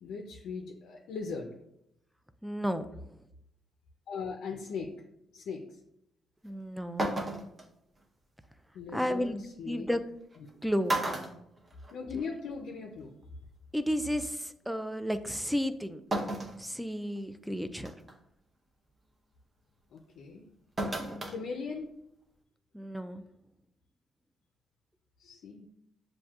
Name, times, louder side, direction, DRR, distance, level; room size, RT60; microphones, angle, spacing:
voice 1, 0.0-1.5 4.1-4.9 5.3-5.8 8.7-9.9 10.4-10.6 11.9-13.1 19.9-20.5 21.3-21.9 25.2-25.7, left 5 dB, 75° left, 3 dB, 0.5 m, -39 dB
voice 2, 2.4-2.9 6.4-7.1 8.9-10.0 10.6-11.0 13.7-16.0 16.6-17.9 22.7-23.2, equal, ahead, 10 dB, 0.3 m, -32 dB
sound 1, 6.5-6.6 7.0-7.6 9.2-9.3 10.3-10.5 10.9-12.3 12.6-12.7 13.9-14.0 16.1-16.6 17.2-17.3 17.8-18.1 20.8-21.4 21.7-21.8, right 1 dB, 25° right, 0.8 m, -33 dB
7.2 x 2.6 x 2.4 m, 0.81 s
cardioid pair, 90°, 0 cm